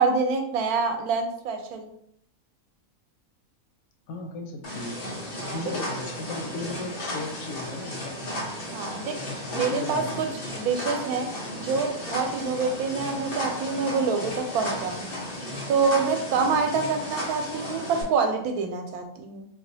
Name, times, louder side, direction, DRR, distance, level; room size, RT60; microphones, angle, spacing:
voice 1, 0.0-1.9 5.4-5.6 8.7-10.3 10.6-11.3 11.6-15.0 15.7-19.5, right 5 dB, 90° right, 1.1 m, -26 dB
voice 2, 4.1-5.1 5.5-8.4 9.3-10.5, left 2 dB, 85° left, 1.1 m, -36 dB
sound 1, 4.6-18.0, left 1 dB, 50° left, 0.8 m, -34 dB
3.8 x 2.4 x 2.7 m
omnidirectional pair, 1.5 m